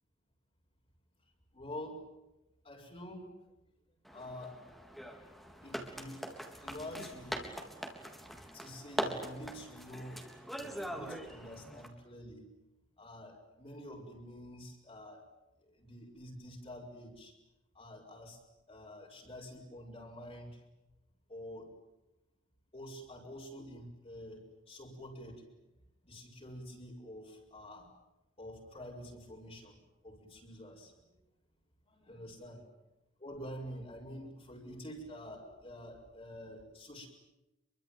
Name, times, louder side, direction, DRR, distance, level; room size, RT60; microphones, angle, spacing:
voice 1, 1.5-2.1 2.6-3.6 4.1-4.6 5.6-6.3 6.6-7.4 8.5-12.5 13.0-15.2 15.6-17.3 17.7-18.4 18.7-20.6 21.3-21.7 22.7-25.4 26.0-27.9 28.4-29.8 30.0-31.1 31.9-32.6 33.2-37.1, equal, 30° left, -1 dB, 5.6 m, -47 dB
sound 1, 4.0-11.9, equal, ahead, 3.7 m, -42 dB
26.0 x 24.0 x 9.2 m, 0.98 s
head